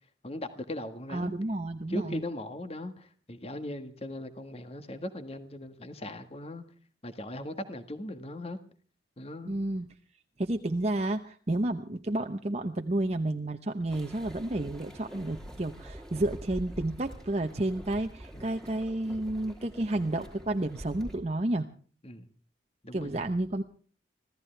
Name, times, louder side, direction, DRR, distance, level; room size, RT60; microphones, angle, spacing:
voice 1, 0.2-1.3 1.9-6.6 7.0-8.6 9.2-9.6 18.3-18.5 22.0-22.3 22.8-23.2, left 1 dB, 35° left, 9 dB, 1.6 m, -39 dB
voice 2, 1.1-2.2 9.4-9.9 10.4-21.7 22.9-23.6, right 1 dB, 35° right, 5 dB, 0.9 m, -31 dB
sound 1, 13.9-21.2, equal, 5° left, 3.2 m, -45 dB
26.0 x 16.0 x 3.4 m, 0.42 s
head